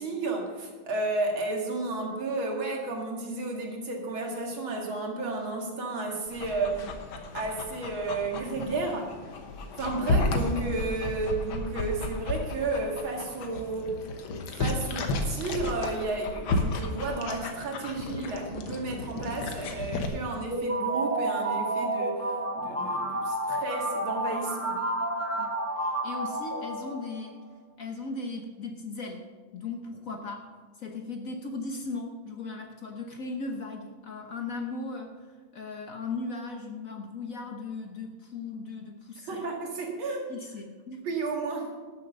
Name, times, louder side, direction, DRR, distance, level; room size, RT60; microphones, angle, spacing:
voice 1, 0.0-6.9 7.3-9.1 9.8-14.0 14.6-22.2 22.5-24.8 39.2-40.3 41.0-41.7, right 3 dB, 75° right, 0 dB, 2.8 m, -32 dB
Dog, 6.3-20.1, left 2 dB, 75° left, 1.9 m, -33 dB
voice 2, 9.9-10.3 25.4-27.4 27.8-29.2 29.5-30.4 30.8-35.3 35.5-39.5 40.3-41.0, left 3 dB, 50° left, 4 dB, 1.2 m, -37 dB
sound 1, 20.5-27.3, right 1 dB, 20° right, 0.4 m, -30 dB
12.0 x 7.5 x 6.6 m, 1.4 s
omnidirectional pair, 2.2 m